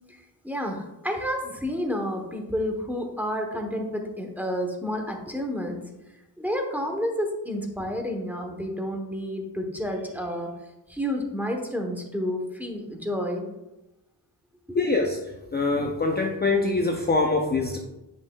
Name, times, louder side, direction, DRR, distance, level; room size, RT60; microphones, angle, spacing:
voice 1, 0.4-5.8 6.4-10.5 10.9-13.5 14.7-14.8, equal, 5° right, 2 dB, 1.0 m, -30 dB
voice 2, 14.7-17.8, left 3 dB, 25° left, 1 dB, 0.6 m, -24 dB
8.1 x 5.6 x 2.3 m, 0.99 s
wide cardioid pair, 100°, 40 cm